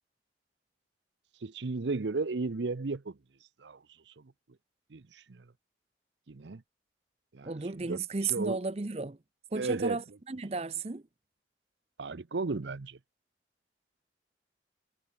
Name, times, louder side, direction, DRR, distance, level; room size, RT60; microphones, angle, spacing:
voice 1, 1.4-3.2 3.6-3.8 4.1-4.2 4.9-5.4 6.3-6.6 7.3-8.0 8.3-8.6 9.5-10.0 12.0-13.0, right 3 dB, 80° right, 0.7 m, -34 dB
voice 2, 7.4-9.2 9.5-11.0, right 4 dB, 35° right, 0.6 m, -34 dB
head